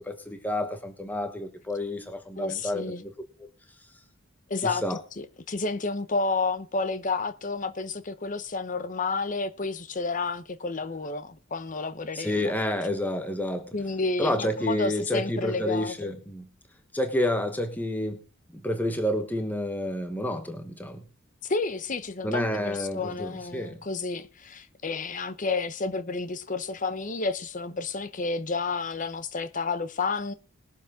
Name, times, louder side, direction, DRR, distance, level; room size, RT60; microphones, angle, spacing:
voice 1, 0.0-3.1 4.6-5.0 12.1-13.7 14.2-16.5 16.9-18.2 18.5-21.0 22.2-23.8, left 1 dB, 10° left, 1.1 m, -29 dB
voice 2, 2.4-3.0 4.5-12.5 13.7-16.1 21.4-30.3, left 3 dB, 40° left, 0.8 m, -31 dB
20.5 x 7.4 x 3.6 m
head